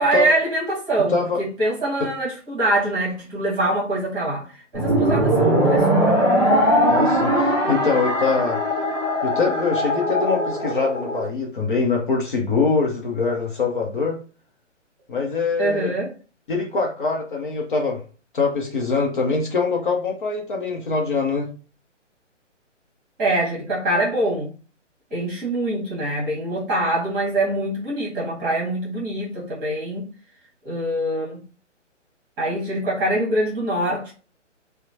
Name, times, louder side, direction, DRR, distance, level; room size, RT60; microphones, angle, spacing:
voice 1, 0.0-1.1 1.6-4.5 4.7-6.6 15.6-16.1 23.2-24.5 25.1-30.1 30.6-31.4 32.4-34.1, right 1 dB, 15° right, 1.2 m, -24 dB
voice 2, 1.1-1.4 2.0-2.1 6.9-8.6 9.2-14.2 15.1-15.9 16.5-18.0 18.3-21.5, left 4 dB, 45° left, 0.6 m, -23 dB
sound 1, 4.7-11.3, equal, 5° left, 0.5 m, -20 dB
2.8 x 2.0 x 2.6 m
figure-of-eight pair, 140°, 37 cm